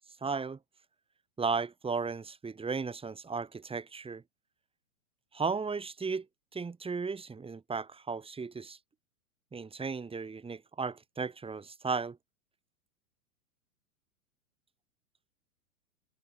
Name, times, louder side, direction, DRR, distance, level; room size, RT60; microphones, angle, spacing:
voice 1, 0.2-0.6 1.4-4.2 5.3-6.3 6.5-8.8 9.5-12.2, right 5 dB, 10° right, 5.2 m, -35 dB
figure-of-eight pair, 95°, 43 cm